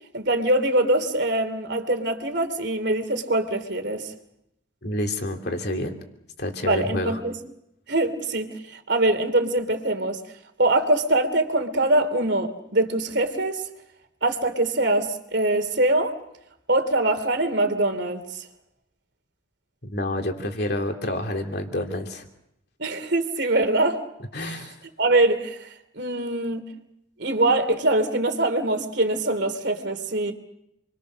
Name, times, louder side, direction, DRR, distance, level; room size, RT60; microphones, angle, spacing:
voice 1, 0.1-4.1 6.6-7.3 7.9-8.5 8.9-10.2 10.6-13.6 14.2-16.1 16.7-18.4 22.8-24.0 24.4-24.6 25.0-25.7 25.9-26.6 27.2-30.3, right 2 dB, 60° right, 2.9 m, -23 dB
voice 2, 4.8-5.9 6.4-7.2 19.8-22.2 24.3-24.8, left 1 dB, 55° left, 3.1 m, -28 dB
28.5 x 24.0 x 6.5 m
head